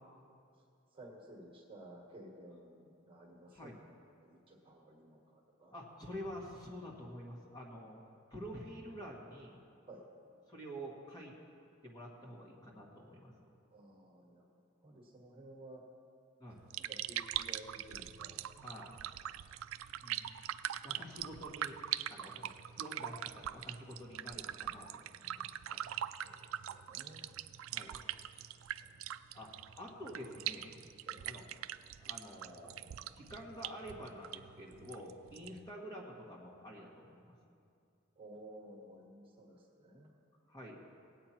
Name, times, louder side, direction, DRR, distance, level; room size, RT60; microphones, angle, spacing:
voice 1, 0.9-3.7 4.2-5.8 9.8-10.1 13.7-14.5 14.8-15.8 16.8-18.5 26.2-27.3 28.8-29.0 31.1-31.3 38.1-40.1, right 1 dB, 25° right, -1 dB, 1.6 m, -54 dB
voice 2, 5.7-8.0 8.3-9.6 10.5-11.3 11.8-13.3 16.4-16.6 18.6-19.0 20.0-20.2 20.8-21.8 22.1-25.9 27.7-28.0 29.3-29.5 29.8-30.8 31.2-31.4 32.0-32.8 33.1-37.3 40.5-40.9, equal, 20° left, -3 dB, 1.6 m, -48 dB
sound 1, 16.5-35.7, right 12 dB, 80° right, 0.3 m, -42 dB
18.0 x 8.6 x 4.4 m, 2.4 s
head